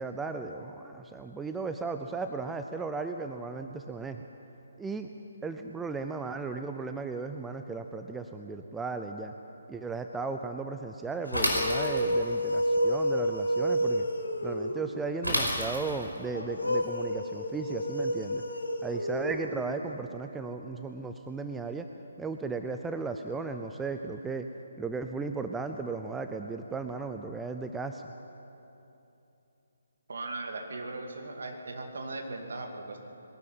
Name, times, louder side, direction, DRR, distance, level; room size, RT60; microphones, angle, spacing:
voice 1, 0.0-4.2 4.8-5.1 5.4-9.3 9.7-14.1 14.4-18.4 18.8-21.9 22.2-24.5 24.8-28.0, right 4 dB, 5° right, 6 dB, 0.5 m, -35 dB
sound 1, 11.3-15.0 16.3-19.9, equal, 75° left, 3.1 m, -30 dB
Bicycle / Mechanisms, 11.3-12.3 15.2-16.2, equal, 90° right, 5.3 m, -29 dB
voice 2, 30.1-33.0, right 2 dB, 55° right, 3 dB, 2.6 m, -38 dB
21.5 x 13.0 x 9.2 m, 2.9 s
figure-of-eight pair, 140°, 0 cm